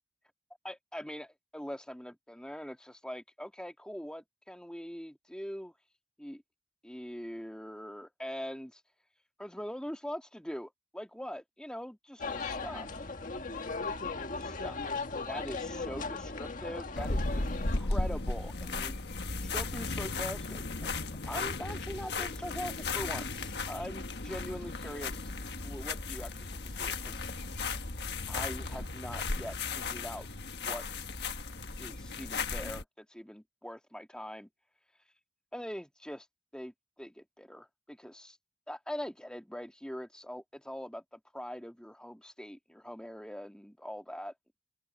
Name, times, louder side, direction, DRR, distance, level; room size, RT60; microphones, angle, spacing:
voice 1, 0.6-5.7 6.2-6.4 6.8-8.8 9.4-13.0 14.4-14.8 15.3-19.0 19.5-20.9 21.3-25.3 25.6-27.2 28.3-30.3 30.6-30.8 31.8-34.5 35.5-36.3 36.5-38.4 38.7-44.3, equal, 5° left, 2.0 m, -42 dB
sound 1, 12.2-17.8, left 4 dB, 50° left, 1.7 m, -37 dB
sound 2, 17.0-32.8, left 3 dB, 70° left, 1.5 m, -35 dB
open air
head